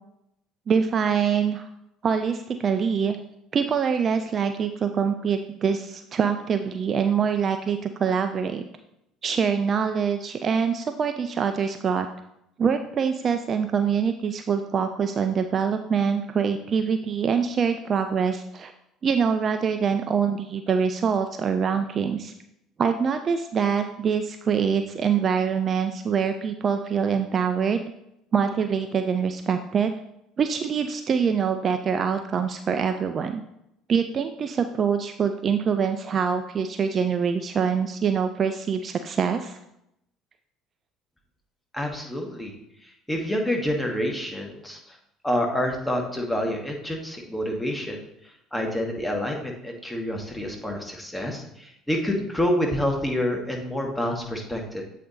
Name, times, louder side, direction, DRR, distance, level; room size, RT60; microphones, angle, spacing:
voice 1, 0.7-1.7 2.0-3.2 3.5-8.6 9.2-12.1 12.6-18.7 19.0-22.3 22.8-27.8 28.3-29.9 30.4-33.4 33.9-39.6, right 6 dB, 35° right, 7 dB, 0.3 m, -24 dB
voice 2, 41.7-42.5 43.1-45.0 45.2-48.0 48.5-54.8, left 1 dB, 10° left, 1 dB, 1.3 m, -28 dB
7.5 x 4.1 x 3.9 m, 0.81 s
figure-of-eight pair, 60°, 0 cm